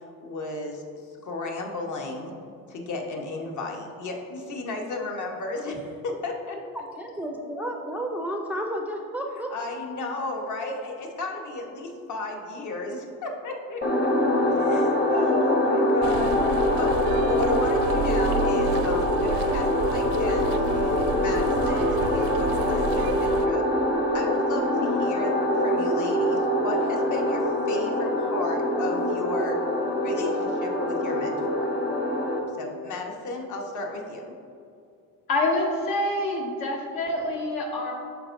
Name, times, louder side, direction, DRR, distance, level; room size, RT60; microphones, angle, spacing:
voice 1, 0.2-2.3 2.7-6.6 9.5-14.1 14.5-16.4 16.7-16.9 17.3-23.6 24.1-29.6 30.0-31.7 32.6-34.3, left 2 dB, 55° left, 1 dB, 1.1 m, -34 dB
voice 2, 6.7-9.5 10.2-10.3 10.7-10.8, right 1 dB, 5° right, 1 dB, 0.4 m, -32 dB
sound 1, 13.8-32.4, left 1 dB, 25° left, 0.8 m, -24 dB
sound 2, 16.0-23.5, right 8 dB, 70° right, 0.5 m, -32 dB
voice 3, 35.3-37.9, left 2 dB, 75° left, -1 dB, 1.5 m, -26 dB
12.0 x 4.5 x 2.6 m, 2.5 s
cardioid pair, 130°, 37 cm